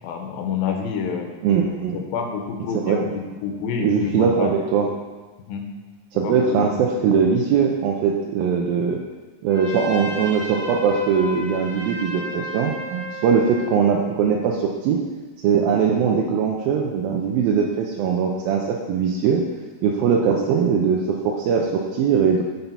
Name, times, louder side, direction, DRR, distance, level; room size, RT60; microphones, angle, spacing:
voice 1, 0.0-1.3 1.9-4.5 5.5-5.6 6.2-6.8, left 6 dB, 90° left, 3 dB, 2.6 m, -28 dB
voice 2, 1.4-2.0 2.8-3.1 3.8-4.9 6.1-9.0 9.4-15.0 15.4-19.4 19.8-22.4, right 6 dB, 90° right, -1 dB, 2.6 m, -21 dB
Trumpet, 9.5-13.8, equal, ahead, 0.9 m, -34 dB
10.0 x 5.5 x 5.5 m, 1.3 s
omnidirectional pair, 4.1 m